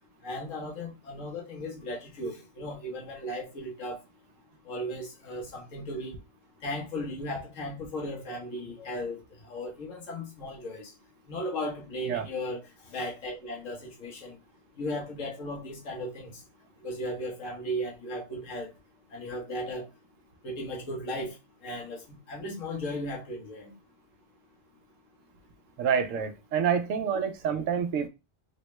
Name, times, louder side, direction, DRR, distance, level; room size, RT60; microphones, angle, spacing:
voice 1, 0.2-4.0 4.7-6.2 6.6-10.9 11.3-14.3 14.8-16.3 16.8-18.7 19.1-19.9 20.4-21.3 21.6-23.7, left 1 dB, 85° left, 1.4 m, -36 dB
voice 2, 25.8-28.1, right 7 dB, 85° right, 1.0 m, -27 dB
3.6 x 2.1 x 2.9 m
omnidirectional pair, 1.3 m